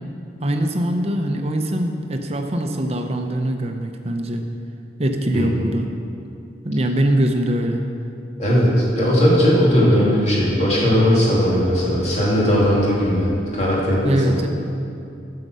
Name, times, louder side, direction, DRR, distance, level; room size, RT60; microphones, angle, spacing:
voice 1, 0.4-4.4 5.0-5.9 6.6-7.8 14.0-14.5, right 1 dB, 35° right, 4 dB, 0.7 m, -22 dB
voice 2, 8.4-14.2, equal, 35° left, -6 dB, 2.6 m, -18 dB
9.4 x 6.8 x 6.2 m, 2.6 s
head